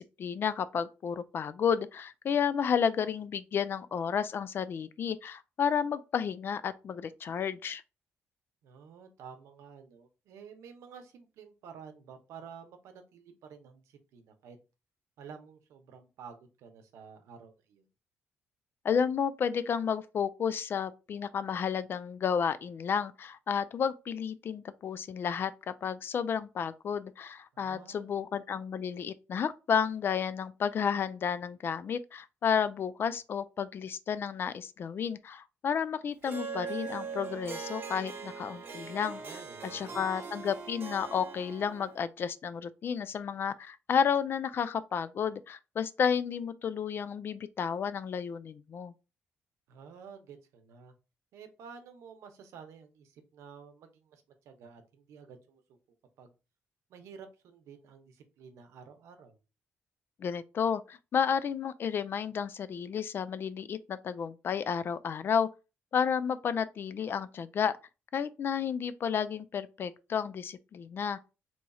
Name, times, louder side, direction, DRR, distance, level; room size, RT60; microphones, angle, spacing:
voice 1, 0.0-7.8 18.8-39.2 39.7-48.9 60.2-65.5 65.9-67.8 68.1-71.2, left 7 dB, 50° left, 0.3 m, -32 dB
voice 2, 8.6-14.6 15.2-17.9 27.5-28.2 39.1-40.1 49.7-50.9 51.3-55.8 56.2-56.3 56.9-59.4, right 6 dB, 90° right, 0.7 m, -51 dB
Harp, 36.2-42.0, right 5 dB, 45° right, 1.0 m, -41 dB
2.9 x 2.3 x 4.1 m
cardioid pair, 105°, 5 cm